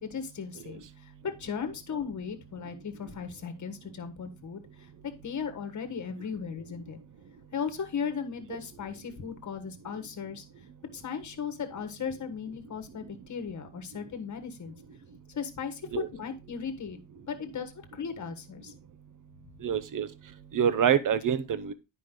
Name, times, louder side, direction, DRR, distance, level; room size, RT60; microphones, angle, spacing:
voice 1, 0.0-7.0 7.5-10.4 10.9-14.7 15.3-17.0 17.3-18.7, left 6 dB, 40° left, 7 dB, 1.4 m, -37 dB
voice 2, 19.6-20.1 20.5-21.7, right 8 dB, 45° right, 14 dB, 0.8 m, -26 dB
9.7 x 5.1 x 3.7 m, 0.25 s
cardioid pair, 135°, 46 cm